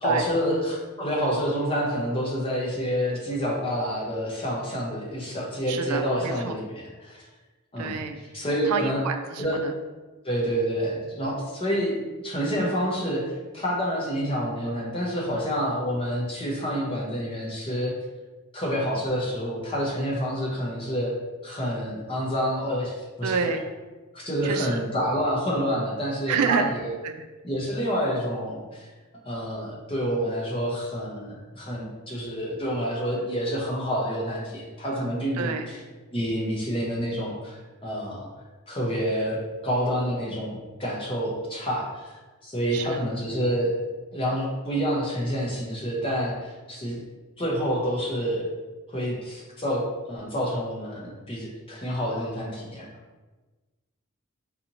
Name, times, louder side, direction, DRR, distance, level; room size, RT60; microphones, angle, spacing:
voice 1, 0.0-7.3 7.7-8.0 8.3-9.0 9.4-9.6 10.2-17.9 18.5-21.1 21.4-23.3 24.1-26.8 27.4-28.9 29.2-35.6 36.1-38.3 38.7-42.1 42.4-43.7 44.1-47.0 47.4-48.5 48.9-52.9, equal, 25° left, -4 dB, 0.7 m, -28 dB
voice 2, 5.7-6.6 7.8-8.2 8.6-9.7 23.2-23.6 24.4-24.8 26.3-26.7 27.0-27.3 35.3-35.7 42.7-43.0, right 5 dB, 85° right, 7 dB, 0.4 m, -28 dB
4.1 x 2.7 x 2.8 m, 1.2 s
head